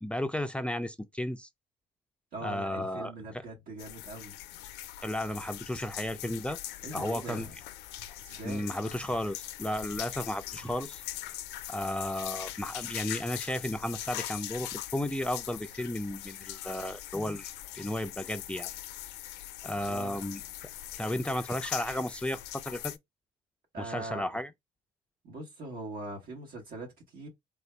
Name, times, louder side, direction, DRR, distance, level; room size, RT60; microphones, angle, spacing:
voice 1, 0.0-1.5 2.4-3.4 5.0-6.6 6.9-7.5 8.4-11.0 11.7-17.5 17.7-18.7 19.6-20.4 21.0-23.0 23.8-24.5, left 1 dB, 5° left, 0.3 m, -34 dB
voice 2, 2.3-4.3 6.8-7.5 8.2-8.7 19.9-20.2 23.7-24.3 25.2-27.3, right 2 dB, 65° right, 1.3 m, -41 dB
sound 1, 3.8-23.0, left 14 dB, 90° left, 0.4 m, -41 dB
3.4 x 2.5 x 3.2 m
cardioid pair, 110°, 17 cm